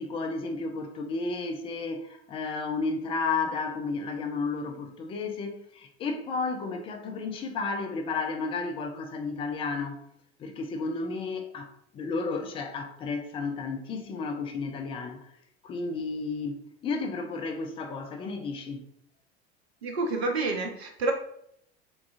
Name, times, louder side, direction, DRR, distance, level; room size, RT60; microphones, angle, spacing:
voice 1, 0.0-10.0 10.4-15.3 15.6-18.9, left 4 dB, 15° left, 0.3 m, -32 dB
voice 2, 19.8-21.1, right 3 dB, 70° right, 0.7 m, -28 dB
3.7 x 2.3 x 2.5 m
figure-of-eight pair, 75°, 33 cm